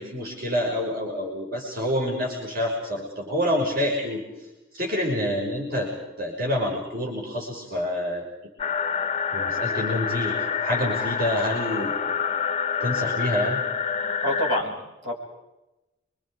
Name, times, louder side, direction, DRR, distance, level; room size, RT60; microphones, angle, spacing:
voice 1, 0.0-4.2 4.8-5.9 6.2-8.2 9.3-11.9 12.8-13.6, left 1 dB, 45° right, -3 dB, 5.9 m, -27 dB
sound 1, 8.6-14.6, left 6 dB, 30° left, 0.8 m, -27 dB
voice 2, 14.2-15.1, equal, 65° right, -1 dB, 6.7 m, -27 dB
29.5 x 25.0 x 5.0 m, 0.99 s
head